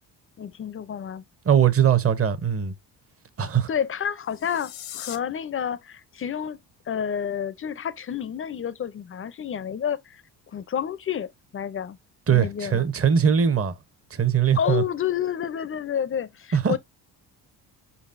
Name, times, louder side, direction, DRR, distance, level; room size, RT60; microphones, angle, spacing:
voice 1, 0.4-1.2 3.7-6.6 6.9-10.2 10.5-12.0 12.3-12.9 14.6-16.8, left 8 dB, 30° left, 0.5 m, -29 dB
voice 2, 1.4-2.7 3.4-3.7 12.3-13.8 14.1-14.8 16.5-16.8, right 8 dB, 30° right, 0.9 m, -21 dB
sound 1, 4.2-5.2, left 12 dB, 85° left, 0.9 m, -39 dB
5.0 x 4.0 x 2.5 m
cardioid pair, 85°, 43 cm